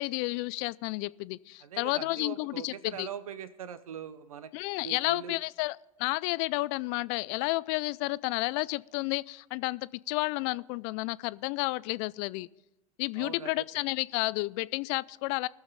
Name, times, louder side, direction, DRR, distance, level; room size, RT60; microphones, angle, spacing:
voice 1, 0.0-3.1 4.5-12.5 13.0-15.5, left 22 dB, 55° left, 0.4 m, -31 dB
voice 2, 1.6-4.5 4.8-5.4 13.2-13.6, right 8 dB, 85° right, 0.7 m, -41 dB
20.5 x 7.2 x 3.9 m
hypercardioid pair, 85°, 18 cm